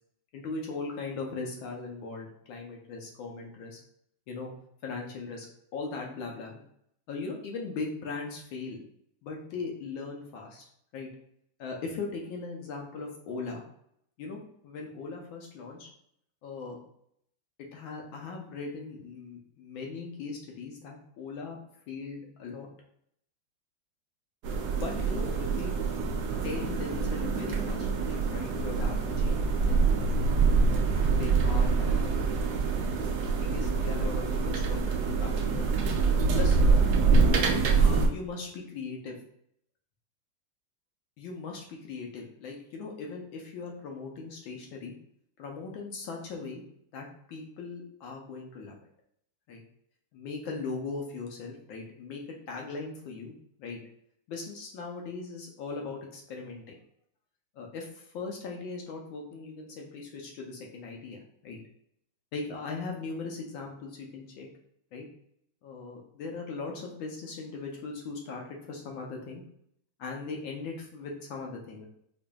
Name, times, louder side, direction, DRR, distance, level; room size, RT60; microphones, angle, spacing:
voice 1, 0.3-3.8 4.3-4.5 4.8-5.5 5.7-6.6 7.1-8.8 9.2-10.6 10.9-11.1 11.6-13.6 14.2-15.9 16.4-16.8 17.7-21.6 21.9-22.7 24.8-25.7 26.4-30.1 31.2-32.1 33.4-35.7 36.3-39.2 41.2-44.9 45.4-46.6 46.9-48.8 49.5-49.6 50.1-53.3 53.6-53.8 54.3-56.8 57.6-61.6 62.3-64.5 64.9-65.1 65.6-69.4 70.0-71.8, left 4 dB, 75° left, 0 dB, 1.3 m, -39 dB
sound 1, 24.4-38.1, right 4 dB, 85° right, 0.8 m, -25 dB
5.0 x 2.6 x 2.3 m, 0.71 s
omnidirectional pair, 2.3 m